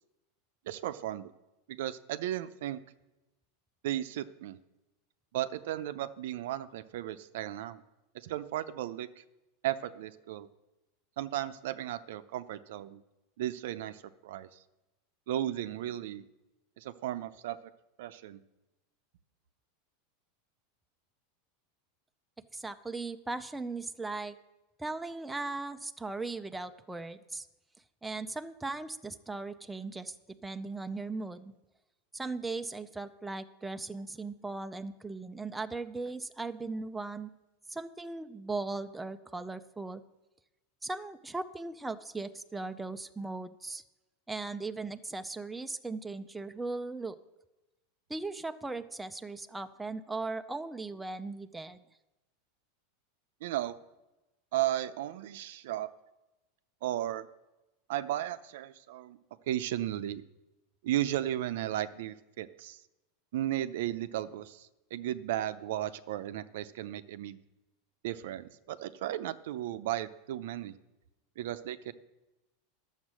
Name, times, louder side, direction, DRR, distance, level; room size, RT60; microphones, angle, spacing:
voice 1, 0.7-1.3 1.7-2.8 3.8-4.6 5.3-7.8 8.1-9.2 9.6-10.5 11.2-13.0 13.4-14.6 15.3-16.2 16.8-17.6 18.0-18.4 53.4-53.8 54.5-55.9 56.8-57.3 57.9-59.2 59.5-60.2 60.8-62.8 63.3-67.4 68.0-70.7 71.4-71.9, right 13 dB, 75° right, 13 dB, 0.6 m, -35 dB
voice 2, 22.5-24.4 24.8-27.5 28.0-30.1 30.4-31.5 32.1-37.3 37.7-40.0 40.8-43.8 44.3-47.2 48.1-51.8, right 3 dB, 5° right, 8 dB, 0.4 m, -38 dB
11.5 x 7.2 x 6.2 m, 1.0 s
supercardioid pair, 150°, 0 cm